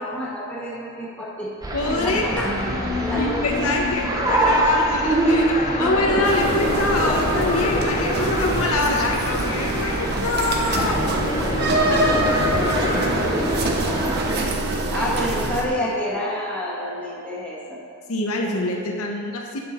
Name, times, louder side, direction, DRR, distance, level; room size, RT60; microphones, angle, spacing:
voice 1, 0.0-1.6 2.0-2.6 3.1-3.2 3.6-4.1 10.7-13.6 14.9-17.8, left 1 dB, 5° left, -6 dB, 1.4 m, -30 dB
sound 1, 1.6-14.5, right 1 dB, 15° right, 0.7 m, -26 dB
voice 2, 1.7-2.4 3.2-11.0 11.9-12.2 15.0-15.1 18.1-19.6, left 2 dB, 70° left, 0 dB, 0.8 m, -24 dB
sound 2, 2.3-14.0, left 3 dB, 30° left, 0.4 m, -30 dB
sound 3, 6.2-15.7, right 2 dB, 50° right, 0.8 m, -25 dB
8.7 x 5.9 x 4.2 m, 2.4 s
head